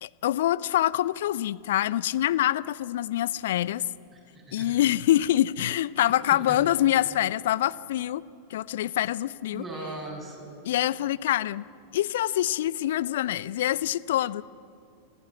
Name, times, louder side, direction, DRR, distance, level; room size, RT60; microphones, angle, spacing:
voice 1, 0.0-3.8 4.5-8.2 8.5-9.6 10.6-11.6 11.9-14.4, left 13 dB, 55° left, 20 dB, 0.5 m, -25 dB
voice 2, 4.1-4.7 6.1-6.6 9.5-10.5, right 2 dB, 20° right, -1 dB, 7.5 m, -39 dB
26.0 x 17.5 x 8.3 m, 2.4 s
figure-of-eight pair, 90°, 0 cm